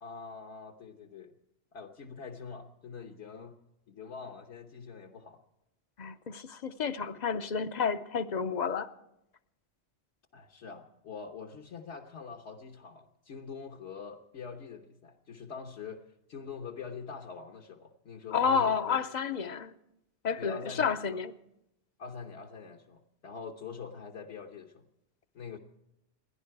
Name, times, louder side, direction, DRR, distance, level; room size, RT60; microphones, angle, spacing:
voice 1, 0.0-1.4 1.7-3.6 3.9-5.4 10.3-19.0 20.4-21.2 22.0-24.9 25.3-25.6, left 5 dB, 65° left, 1.3 m, -44 dB
voice 2, 6.0-8.9 18.3-19.7 20.2-21.3, left 6 dB, 45° left, 0.6 m, -30 dB
29.5 x 10.5 x 4.7 m
omnidirectional pair, 1.3 m